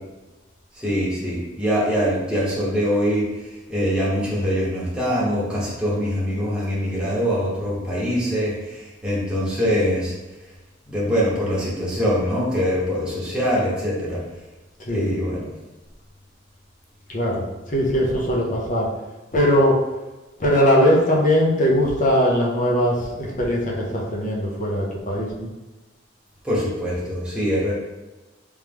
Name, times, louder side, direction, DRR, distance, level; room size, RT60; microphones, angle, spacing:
voice 1, 0.7-3.3 3.7-10.1 10.9-14.2 14.9-15.5 26.4-27.7, equal, 5° right, -7 dB, 1.0 m, -23 dB
voice 2, 17.1-17.4 17.7-18.9 19.3-19.8 20.4-25.5, equal, 40° left, -3 dB, 0.8 m, -20 dB
3.4 x 3.1 x 3.5 m, 1.1 s
head